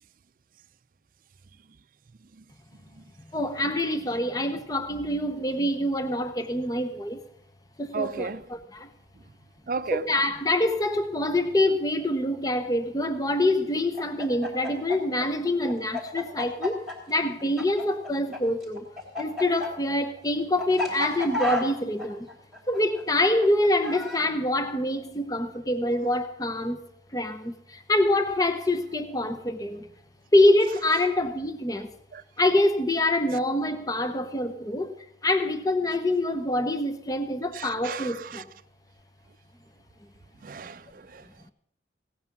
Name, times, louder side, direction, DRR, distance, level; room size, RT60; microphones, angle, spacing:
voice 1, 3.3-7.2 7.8-8.9 9.9-16.8 17.1-18.9 19.2-22.3 22.7-26.8 27.1-29.9 30.3-31.9 32.4-34.9 35.2-38.4, left 1 dB, 20° left, 0.7 m, -25 dB
voice 2, 7.9-8.4 9.7-10.0 32.1-32.2 37.5-38.4 40.4-41.3, right 5 dB, 45° right, 0.4 m, -34 dB
Chicken rooster, 13.9-18.4 18.6-24.3, left 2 dB, ahead, 3.6 m, -32 dB
17.0 x 9.4 x 5.9 m
head